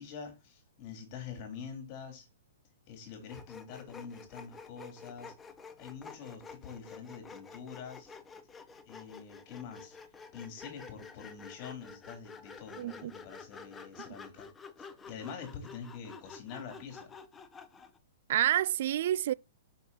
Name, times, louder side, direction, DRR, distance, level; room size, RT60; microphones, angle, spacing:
voice 1, 0.0-2.3 2.9-5.3 5.8-8.1 8.9-10.0 10.3-14.5 14.8-17.1, left 6 dB, 40° left, 3.8 m, -45 dB
Sawing, 3.3-18.0, left 5 dB, 15° left, 0.8 m, -50 dB
voice 2, 12.8-13.1 18.3-19.3, right 12 dB, 60° right, 0.3 m, -28 dB
6.0 x 5.9 x 4.2 m
hypercardioid pair, 140°, 0 cm